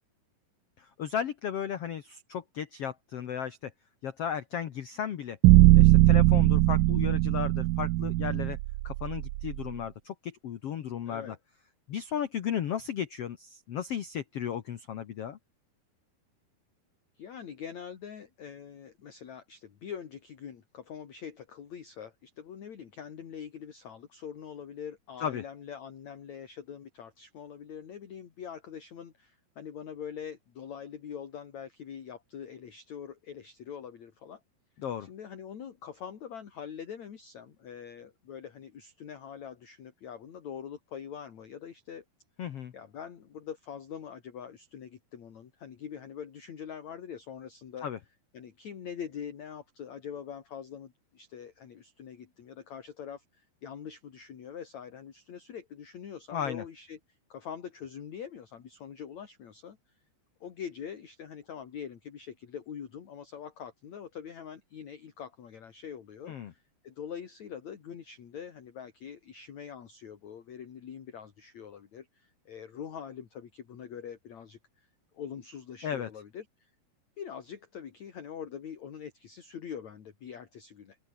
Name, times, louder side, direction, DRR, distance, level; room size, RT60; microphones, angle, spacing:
voice 1, 0.8-3.7 4.0-5.4 5.7-8.6 8.8-11.3 11.9-15.4 25.2-25.4 34.8-35.1 42.4-42.7 47.8-48.0 56.3-56.6 66.3-66.5 75.8-76.1, left 8 dB, 90° left, 1.3 m, -35 dB
sound 1, 5.4-9.6, right 19 dB, 85° right, 2.0 m, -21 dB
voice 2, 11.1-11.4 17.1-34.4 35.0-42.0 42.7-47.9 48.3-59.8 60.4-74.9 75.1-76.7 77.2-81.0, left 8 dB, 50° left, 3.3 m, -44 dB
open air
omnidirectional pair, 4.6 m